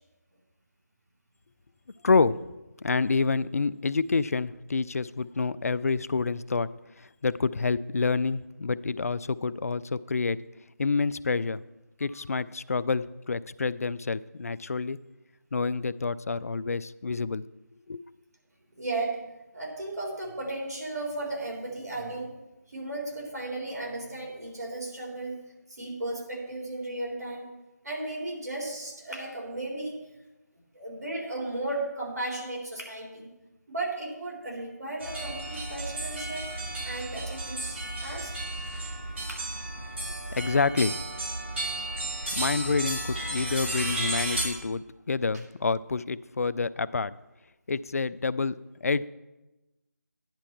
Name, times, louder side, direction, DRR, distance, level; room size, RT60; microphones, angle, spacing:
voice 1, 2.0-2.4 2.8-6.7 7.0-10.4 10.8-11.6 12.0-15.0 15.5-17.5 17.9-18.0 40.3-40.9 42.3-47.1 47.7-48.6 48.8-49.1, left 4 dB, 55° left, 17 dB, 0.4 m, -28 dB
voice 2, 18.8-19.2 19.5-22.3 22.7-25.4 25.7-27.5 27.8-30.0 30.7-33.3 33.7-36.5 36.8-38.3 39.3-39.4, right 2 dB, 65° right, -2 dB, 3.6 m, -35 dB
sound 1, 35.0-44.4, right 1 dB, 40° right, 3.4 m, -33 dB
10.5 x 9.9 x 4.5 m, 1.0 s
figure-of-eight pair, 165°, 10 cm